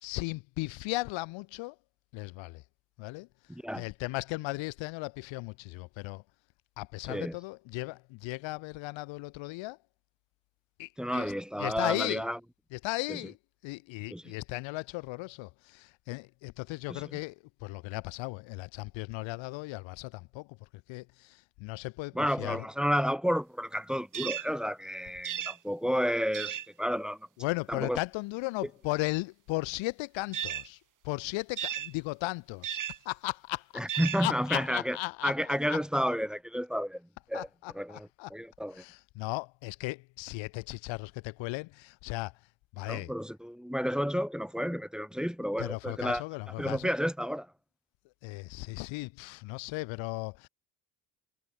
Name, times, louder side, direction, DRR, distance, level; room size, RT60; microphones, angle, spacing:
voice 1, 0.0-1.8 2.1-2.6 3.0-3.3 3.8-6.2 6.8-9.8 10.8-11.3 11.6-12.2 12.7-13.4 13.6-20.6 20.9-22.7 27.4-30.8 31.0-32.8 33.1-33.7 34.2-35.8 37.3-38.3 38.7-42.3 42.7-43.1 45.6-47.0 48.2-50.5, left 23 dB, 80° left, 0.6 m, -36 dB
voice 2, 3.5-3.9 7.1-7.4 11.0-12.4 13.1-13.2 14.1-14.3 16.9-17.0 22.1-27.2 27.7-28.0 33.7-35.0 35.2-37.5 37.7-38.8 42.8-46.2 46.6-47.5, equal, ahead, 1.5 m, -31 dB
sound 1, 24.1-24.5 25.2-25.6 26.3-26.7 30.3-30.7 31.6-31.9 32.6-33.0 33.9-34.2, right 10 dB, 45° right, 0.9 m, -34 dB
supercardioid pair, 65°, 45 cm